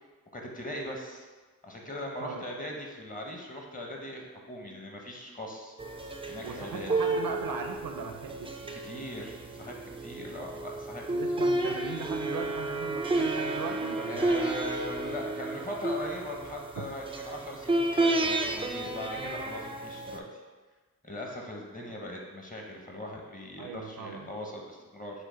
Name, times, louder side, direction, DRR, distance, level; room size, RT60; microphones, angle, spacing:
voice 1, 0.3-1.3 1.6-5.8 6.3-6.9 8.7-9.8 10.0-11.0 11.4-11.5 14.1-20.4 21.0-25.3, left 1 dB, 25° left, 0 dB, 0.9 m, -40 dB
sound 1, 5.8-20.2, right 2 dB, 15° right, 0.4 m, -31 dB
voice 2, 6.4-8.5 11.1-14.3 16.8-16.9 19.2-19.3 23.6-24.3, right 5 dB, 75° right, 5 dB, 0.5 m, -38 dB
5.0 x 2.2 x 4.4 m, 1.3 s
cardioid pair, 55°, 35 cm